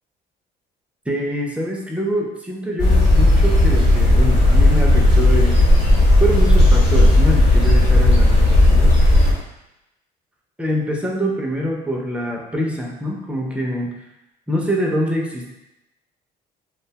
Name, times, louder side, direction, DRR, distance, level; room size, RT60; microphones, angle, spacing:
voice 1, 1.1-5.6 6.2-8.9 10.6-13.9 14.5-15.5, equal, 5° right, -1 dB, 0.5 m, -24 dB
sound 1, 2.8-9.3, left 1 dB, 50° left, 1.0 m, -13 dB
2.7 x 2.2 x 2.8 m, 0.90 s
cardioid pair, 110°, 17 cm